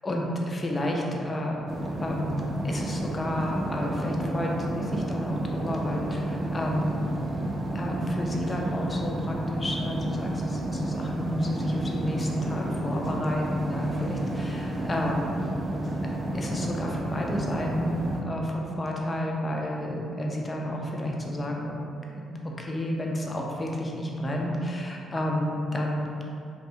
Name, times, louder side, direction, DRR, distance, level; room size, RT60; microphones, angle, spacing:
voice 1, 0.0-1.6 2.0-7.3 7.7-15.2 16.3-21.8 22.1-22.3 22.6-26.2, equal, 25° left, -1 dB, 0.5 m, -31 dB
sound 1, 1.7-18.2, right 1 dB, 30° right, 0.4 m, -31 dB
2.7 x 2.5 x 3.4 m, 2.6 s
cardioid pair, 90°, 0 cm